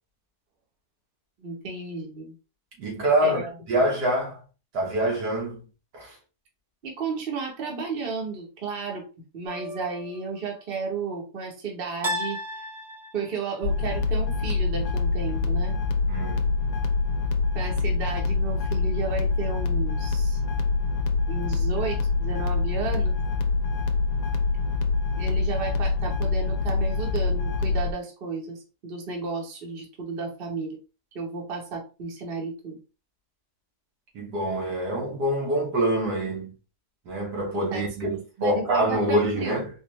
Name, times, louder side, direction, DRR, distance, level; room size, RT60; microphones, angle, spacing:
voice 1, 1.4-2.4 3.2-3.5 6.8-9.1 9.3-12.4 13.1-15.7 17.5-20.4 21.3-23.1 25.1-30.8 31.1-32.8 37.7-38.1 38.4-39.6, right 4 dB, 40° right, 1.1 m, -33 dB
voice 2, 2.8-4.4 4.7-5.7 5.9-6.2 16.1-16.5 34.1-36.5 37.1-39.7, right 1 dB, 75° right, 1.9 m, -25 dB
sound 1, 9.4-10.2 12.0-13.5, equal, 20° right, 0.7 m, -34 dB
sound 2, 13.6-27.9, left 4 dB, 65° left, 1.0 m, -25 dB
4.1 x 2.5 x 3.1 m
omnidirectional pair, 1.8 m